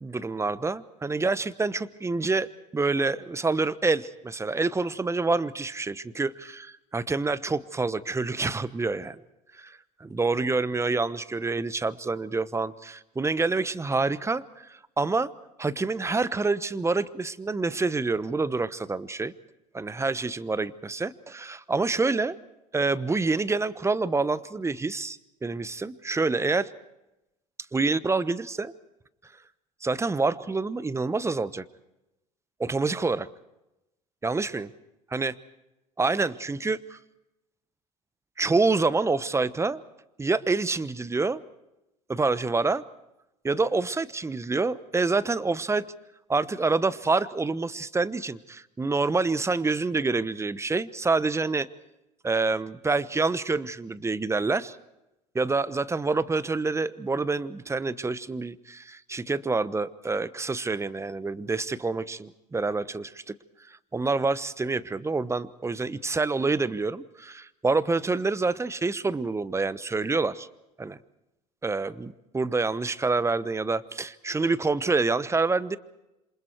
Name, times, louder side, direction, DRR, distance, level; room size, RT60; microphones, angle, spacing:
voice 1, 0.0-9.2 9.6-15.3 15.6-19.3 19.7-22.4 22.7-26.7 27.7-28.7 29.8-31.6 32.6-33.3 34.2-34.7 35.1-35.3 36.0-37.0 38.4-39.8 40.2-41.4 42.1-42.8 43.4-45.8 46.3-51.7 52.2-54.8 55.3-63.3 63.7-70.5 70.8-71.0 71.6-75.8, right 3 dB, 15° right, 16 dB, 1.0 m, -27 dB
28.0 x 26.5 x 4.6 m, 0.93 s
hypercardioid pair, 70°, 17 cm